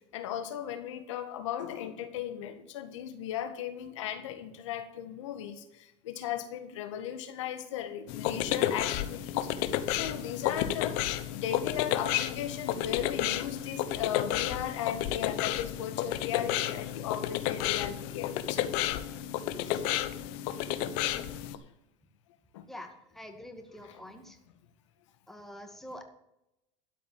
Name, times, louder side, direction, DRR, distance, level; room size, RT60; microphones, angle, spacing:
voice 1, 0.1-18.7 19.6-19.8 22.5-22.7 23.8-24.2, left 10 dB, 85° left, 8 dB, 1.8 m, -37 dB
sound 1, 8.1-21.6, left 12 dB, 70° left, 1.0 m, -31 dB
voice 2, 22.7-24.4 25.3-26.0, left 1 dB, ahead, 4 dB, 2.1 m, -46 dB
12.5 x 5.4 x 8.8 m, 0.85 s
supercardioid pair, 100°, 15 cm